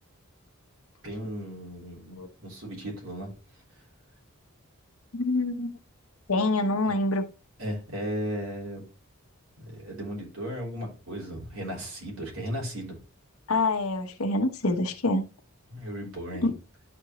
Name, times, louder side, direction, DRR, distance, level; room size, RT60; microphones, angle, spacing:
voice 1, 1.0-3.3 6.9-7.0 7.6-8.8 9.6-12.9 15.7-16.5, equal, 80° right, 3.5 m, -36 dB
voice 2, 5.1-5.7 6.3-7.2 13.5-15.3 16.4-16.5, left 2 dB, 90° left, 1.1 m, -26 dB
11.0 x 4.4 x 3.0 m
head